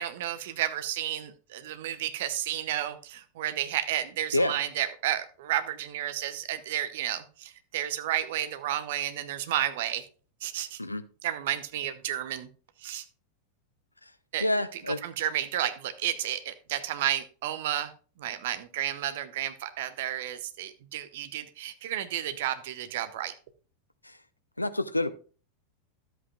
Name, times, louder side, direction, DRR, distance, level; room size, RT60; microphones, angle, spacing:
voice 1, 0.0-10.0 10.4-10.8 11.2-12.5 12.8-13.0 14.3-14.5 14.7-17.9 18.2-23.3, right 12 dB, 55° right, 11 dB, 0.8 m, -32 dB
voice 2, 14.4-15.0 24.0-24.2 24.6-25.1, left 1 dB, 85° left, 13 dB, 0.5 m, -27 dB
12.5 x 8.0 x 2.4 m, 0.38 s
figure-of-eight pair, 90°, 0 cm